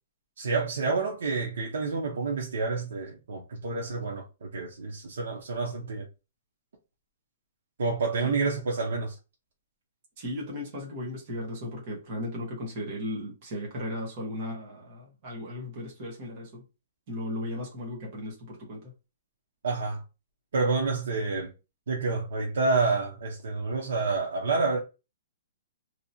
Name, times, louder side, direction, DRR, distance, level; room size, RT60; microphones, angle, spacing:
voice 1, 0.4-6.1 7.8-9.2 19.6-20.0 20.5-21.5 21.9-24.8, right 4 dB, 75° right, 0.9 m, -28 dB
voice 2, 10.2-16.6 17.1-18.9, left 1 dB, 30° right, 1.2 m, -36 dB
2.9 x 2.8 x 2.7 m
hypercardioid pair, 180°, 0 cm